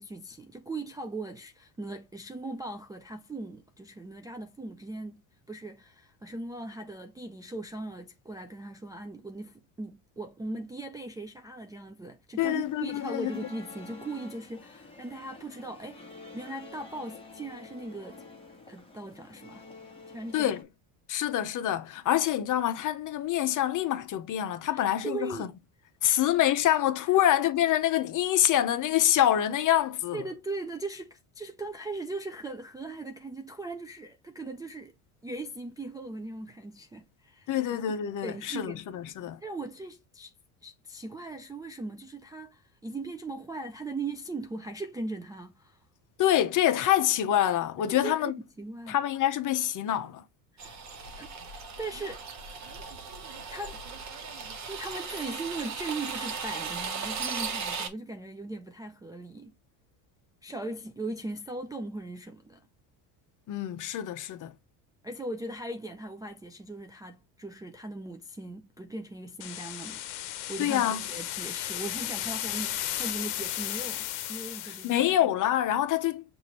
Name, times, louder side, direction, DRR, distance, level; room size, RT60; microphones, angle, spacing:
voice 1, 0.0-5.2 5.5-18.2 18.7-19.6 20.1-20.5 24.7-25.5 26.0-26.2 30.1-34.9 35.2-38.0 38.2-38.8 39.4-40.3 40.6-45.8 47.9-48.3 48.6-49.0 50.6-50.8 51.2-51.3 51.8-52.2 53.5-53.8 54.7-59.5 60.4-62.6 65.0-70.0 70.5-75.3, right 2 dB, 10° right, 0.3 m, -39 dB
voice 2, 12.4-13.5 20.3-20.6 21.1-25.5 26.0-30.3 37.5-39.4 46.2-48.4 48.9-50.2 63.5-64.5 70.6-71.0 74.6-76.2, left 12 dB, 45° left, 0.8 m, -26 dB
sound 1, 12.4-20.6, left 3 dB, 15° left, 1.2 m, -49 dB
sound 2, 50.6-57.9, right 5 dB, 40° right, 1.1 m, -37 dB
sound 3, 69.4-75.1, left 13 dB, 90° left, 0.7 m, -35 dB
5.8 x 2.6 x 3.0 m
supercardioid pair, 100°, 42 cm